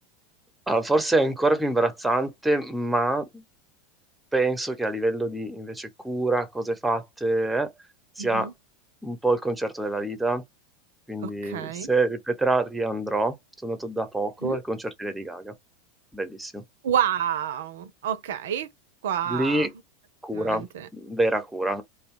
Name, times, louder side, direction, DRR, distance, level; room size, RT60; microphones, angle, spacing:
voice 1, 0.7-3.4 4.3-7.7 8.2-8.5 9.0-10.4 11.1-13.4 13.6-15.5 16.1-16.6 19.3-19.7 20.2-20.7 20.9-21.8, right 2 dB, 5° right, 0.9 m, -26 dB
voice 2, 8.2-8.5 11.2-11.9 14.4-14.6 16.8-18.7 19.0-19.7 20.3-20.9, right 9 dB, 75° right, 0.5 m, -29 dB
2.6 x 2.2 x 3.7 m
hypercardioid pair, 95°, 0 cm